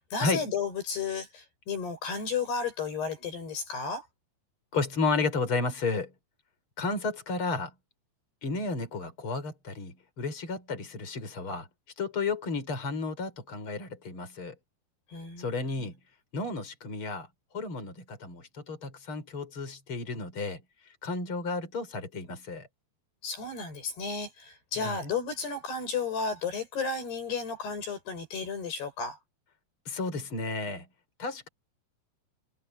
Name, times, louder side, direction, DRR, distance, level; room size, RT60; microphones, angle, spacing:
voice 1, 0.0-4.0 15.1-15.9 23.2-29.2, left 5 dB, 90° left, 9.9 m, -33 dB
voice 2, 4.7-6.1 6.8-7.7 8.4-11.7 12.0-14.5 15.4-16.0 16.3-17.3 17.5-20.6 21.0-22.7 24.8-25.0 29.9-30.9 31.2-31.5, left 3 dB, 30° left, 6.2 m, -32 dB
omnidirectional pair, 4.5 m